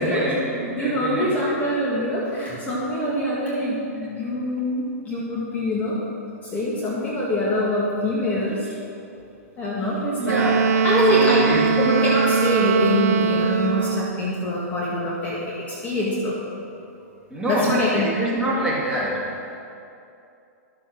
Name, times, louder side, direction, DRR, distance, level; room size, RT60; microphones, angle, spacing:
voice 1, 0.0-1.3 10.2-10.6 11.1-11.8 17.3-19.3, right 1 dB, 10° right, -6 dB, 2.5 m, -26 dB
voice 2, 0.8-6.0 6.4-8.7 9.6-10.5 10.8-11.5 11.8-16.4 17.5-18.1, left 1 dB, 20° left, -6 dB, 1.8 m, -24 dB
Wind instrument woodwind instrument, 10.2-14.2, right 5 dB, 75° right, 0.6 m, -21 dB
12.5 x 7.4 x 6.1 m, 2.6 s
hypercardioid pair, 145°, 9 cm